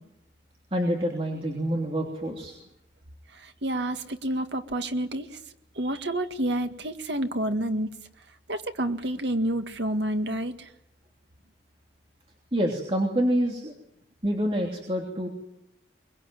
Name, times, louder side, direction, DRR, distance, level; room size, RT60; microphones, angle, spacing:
voice 1, 0.7-2.5 12.5-13.7 14.2-15.3, equal, 30° right, 0 dB, 3.1 m, -27 dB
voice 2, 3.3-5.4 5.8-7.9 8.5-10.7, right 1 dB, 75° right, 7 dB, 1.9 m, -29 dB
23.5 x 21.5 x 9.3 m, 0.81 s
head